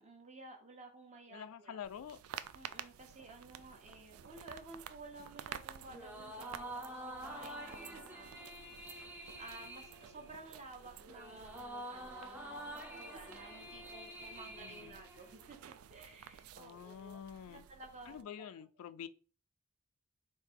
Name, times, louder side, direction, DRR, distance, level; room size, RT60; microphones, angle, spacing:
voice 1, 0.0-1.8 2.5-8.6 9.4-15.6 15.9-18.5, right 2 dB, 35° right, 1.0 m, -54 dB
voice 2, 1.3-2.2 14.6-15.0 16.6-17.6 18.1-19.1, left 8 dB, 85° left, 0.3 m, -47 dB
sound 1, 1.8-18.2, right 9 dB, 85° right, 0.3 m, -52 dB
sound 2, 5.9-15.6, right 1 dB, 10° right, 0.6 m, -48 dB
3.8 x 2.8 x 4.4 m
head